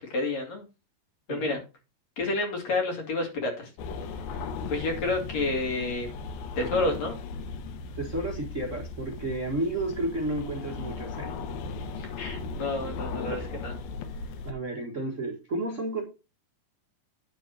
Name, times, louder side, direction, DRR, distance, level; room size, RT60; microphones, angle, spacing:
voice 1, 0.1-0.6 1.3-1.6 2.2-3.7 4.7-6.1 6.6-7.2 12.0-13.8, left 2 dB, 50° left, 2 dB, 3.3 m, -29 dB
sound 1, 3.8-14.5, left 4 dB, 85° left, 2.9 m, -37 dB
voice 2, 7.9-11.4 14.4-16.0, right 2 dB, 65° right, -1 dB, 0.7 m, -32 dB
9.9 x 4.1 x 6.3 m, 0.30 s
omnidirectional pair, 4.3 m